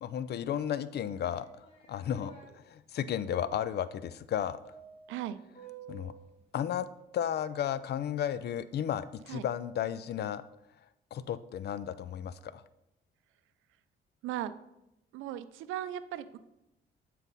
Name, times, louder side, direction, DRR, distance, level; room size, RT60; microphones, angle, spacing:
voice 1, 0.0-4.6 5.9-6.1 6.5-6.9 7.1-10.4 11.1-12.6, left 9 dB, 55° left, 15 dB, 0.4 m, -34 dB
sound 1, 1.2-2.5 4.7-6.3, right 6 dB, 30° left, 2.2 m, -51 dB
voice 2, 5.1-5.4 9.3-9.5 14.2-14.5 15.1-16.4, right 12 dB, 90° right, 13 dB, 0.4 m, -37 dB
9.0 x 4.1 x 4.0 m, 0.87 s
cardioid pair, 90°, 20 cm